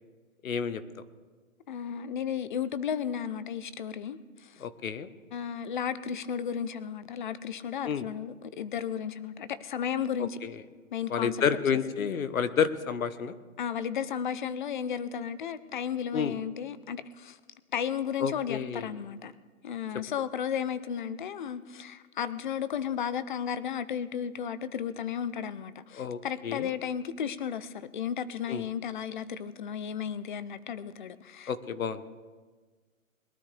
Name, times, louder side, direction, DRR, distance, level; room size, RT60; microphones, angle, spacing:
voice 1, 0.4-0.8 4.6-5.1 7.8-8.0 10.4-10.6 11.1-13.3 16.1-16.3 18.2-18.9 25.9-26.7 28.5-28.6 31.5-32.1, left 7 dB, 75° left, 13 dB, 1.1 m, -30 dB
voice 2, 1.7-4.6 5.3-10.4 10.9-11.4 13.6-17.4 17.7-19.3 19.6-31.5, left 8 dB, 35° left, 15 dB, 0.6 m, -34 dB
21.5 x 12.5 x 3.3 m, 1.4 s
hypercardioid pair, 155°, 41 cm